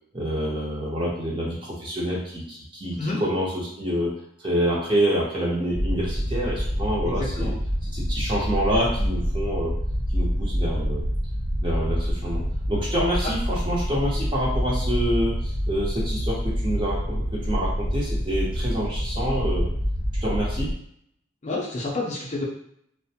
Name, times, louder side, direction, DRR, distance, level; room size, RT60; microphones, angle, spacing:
voice 1, 0.1-4.1 4.4-7.5 7.8-9.7 10.1-11.0 11.6-12.4 12.7-19.7 20.2-20.7, equal, 25° right, -5 dB, 0.6 m, -27 dB
sound 1, 5.7-20.7, equal, 90° right, 1.0 m, -27 dB
voice 2, 7.0-7.5 21.4-22.4, left 2 dB, 35° left, -4 dB, 0.5 m, -29 dB
2.5 x 2.1 x 2.7 m, 0.69 s
head